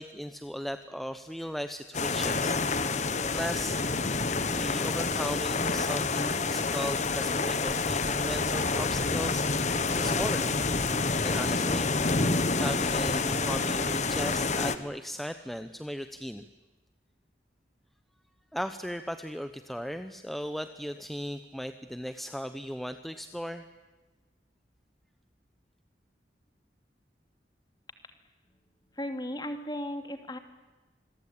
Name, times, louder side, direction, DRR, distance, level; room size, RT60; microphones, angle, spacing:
voice 1, 0.0-2.6 3.3-3.8 4.6-10.5 11.2-16.5 18.5-23.7, equal, ahead, 9 dB, 0.8 m, -37 dB
sound 1, 1.9-14.8, left 3 dB, 40° left, 1.3 m, -28 dB
voice 2, 29.0-30.4, left 1 dB, 25° left, 7 dB, 2.6 m, -35 dB
27.0 x 22.5 x 8.6 m, 1.2 s
head